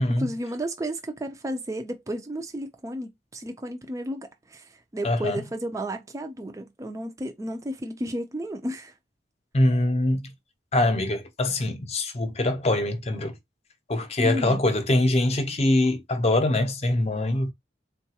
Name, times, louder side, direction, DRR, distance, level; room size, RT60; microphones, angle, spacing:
voice 1, 0.1-8.9 14.2-14.6, equal, 15° right, 0.4 m, -33 dB
voice 2, 5.0-5.4 9.5-10.3 10.7-13.4 13.9-17.5, left 1 dB, 35° left, 0.6 m, -23 dB
3.8 x 2.3 x 2.8 m
head